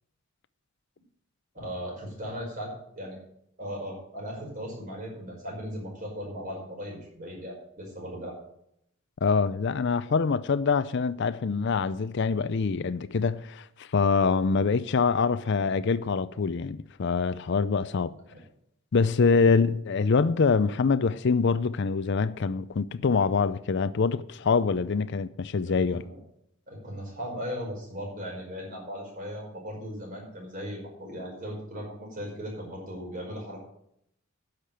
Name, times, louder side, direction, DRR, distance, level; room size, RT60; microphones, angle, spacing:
voice 1, 1.5-3.2 3.6-8.4 15.6-15.7 18.3-18.4 19.3-19.5 25.6-26.2 26.7-33.6, equal, 40° right, 5.2 m, -38 dB
voice 2, 9.2-18.1 18.9-26.0, left 5 dB, 55° left, 0.5 m, -25 dB
10.0 x 6.7 x 9.0 m
head